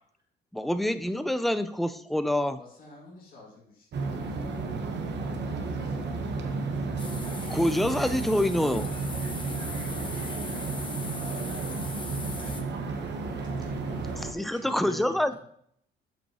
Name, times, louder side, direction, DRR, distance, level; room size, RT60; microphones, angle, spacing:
voice 1, 0.5-2.6 7.2-8.9 14.2-15.3, left 1 dB, ahead, 11 dB, 0.4 m, -26 dB
voice 2, 2.6-4.8 5.3-5.9, left 2 dB, 45° left, -5 dB, 2.1 m, -53 dB
sound 1, 3.9-14.3, right 3 dB, 60° right, 1.0 m, -32 dB
sound 2, 7.0-12.6, left 3 dB, 25° left, 1.1 m, -41 dB
voice 3, 12.9-15.4, right 1 dB, 20° right, -2 dB, 2.6 m, -46 dB
7.4 x 5.5 x 2.9 m, 0.67 s
cardioid pair, 90°, 20 cm